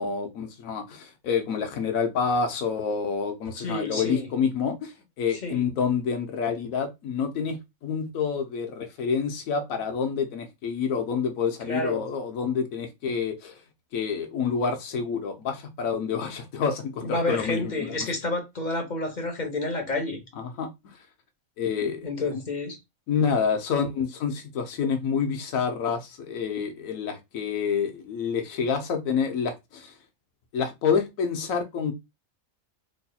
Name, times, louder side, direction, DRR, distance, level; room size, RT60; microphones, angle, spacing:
voice 1, 0.0-4.9 5.2-13.6 13.9-18.1 20.4-20.7 21.6-22.4 23.1-29.9 30.5-31.9, left 6 dB, 90° left, 1.2 m, -28 dB
voice 2, 3.6-4.3 5.4-5.6 11.7-12.0 17.0-20.2 22.0-22.8, left 2 dB, 35° left, 1.0 m, -29 dB
4.2 x 3.2 x 2.3 m
omnidirectional pair, 1.4 m